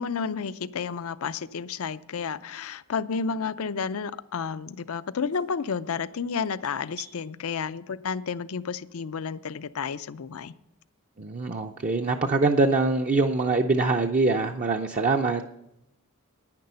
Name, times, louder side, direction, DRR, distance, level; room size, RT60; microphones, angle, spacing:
voice 1, 0.0-10.5, left 5 dB, 70° left, 15 dB, 0.5 m, -31 dB
sound 1, 5.3-7.2, right 9 dB, 80° right, 4.0 m, -50 dB
voice 2, 11.2-15.4, right 3 dB, 35° right, 3 dB, 0.6 m, -24 dB
10.5 x 9.5 x 6.9 m, 0.85 s
head